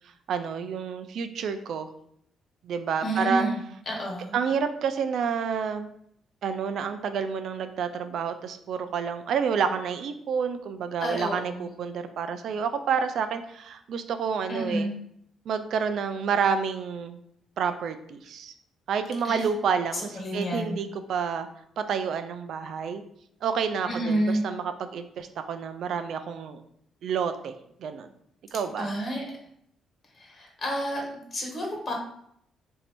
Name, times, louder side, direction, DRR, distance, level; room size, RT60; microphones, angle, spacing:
voice 1, 0.3-1.9 2.6-3.5 4.3-5.9 6.4-14.9 15.5-17.2 17.6-18.5 18.9-21.5 21.8-23.0 23.4-26.6 27.0-27.5 27.8-28.1 28.5-28.9, right 6 dB, 70° right, 9 dB, 0.4 m, -29 dB
voice 2, 3.0-3.6 3.9-4.4 11.0-11.7 14.5-14.9 19.2-19.4 19.9-20.8 23.9-24.4 28.8-29.2 30.2-31.0 31.3-31.9, right 1 dB, 40° left, -1 dB, 1.4 m, -29 dB
3.0 x 2.7 x 4.4 m, 0.71 s
cardioid pair, 90°, 0 cm